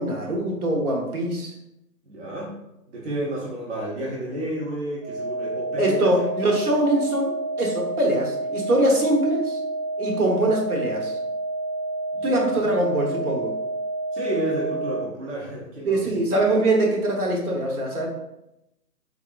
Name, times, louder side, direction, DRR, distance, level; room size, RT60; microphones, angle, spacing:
voice 1, 0.0-1.5 5.8-7.3 7.6-9.6 10.0-11.1 12.2-13.5 15.8-18.1, right 1 dB, 65° right, 0 dB, 1.1 m, -23 dB
voice 2, 2.0-2.6 2.9-6.3 12.1-12.7 14.1-16.1, right 1 dB, 45° right, -4 dB, 0.8 m, -31 dB
sound 1, 5.0-15.0, right 2 dB, 35° left, 0.4 m, -29 dB
3.6 x 2.9 x 2.4 m, 0.86 s
figure-of-eight pair, 150°, 47 cm